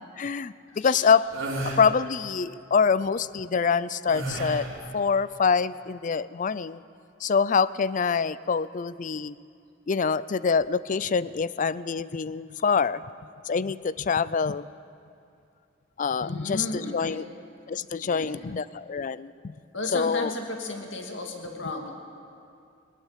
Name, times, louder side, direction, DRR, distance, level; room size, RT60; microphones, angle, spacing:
voice 1, 0.2-1.3 1.8-4.7 4.9-6.8 7.2-9.3 9.9-13.0 13.5-14.7 16.0-17.2 17.7-19.5 19.9-20.3, left 5 dB, 40° left, 17 dB, 0.4 m, -25 dB
voice 2, 0.7-1.0 16.2-17.3 18.0-18.5 19.7-21.9, left 2 dB, 70° left, 2 dB, 2.4 m, -35 dB
sound 1, 1.3-1.8 4.1-4.8, right 1 dB, 75° right, 4.0 m, -31 dB
20.5 x 19.0 x 7.4 m, 2.5 s
head